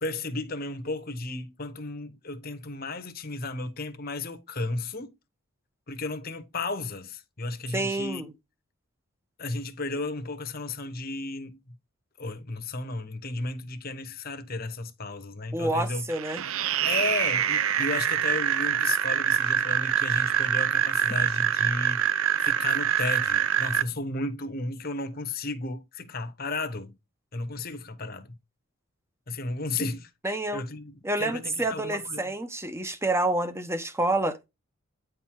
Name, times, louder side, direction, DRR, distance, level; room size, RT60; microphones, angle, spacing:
voice 1, 0.0-5.1 5.9-8.3 9.4-11.8 12.2-16.1 16.8-22.1 22.4-27.0 27.3-28.4 29.3-32.3, left 2 dB, 45° left, 1.0 m, -34 dB
voice 2, 7.7-8.3 15.5-16.4 30.2-30.6 31.0-34.5, right 2 dB, 10° right, 0.9 m, -28 dB
sound 1, 16.1-23.8, right 9 dB, 70° right, 0.6 m, -25 dB
9.4 x 4.6 x 3.7 m
head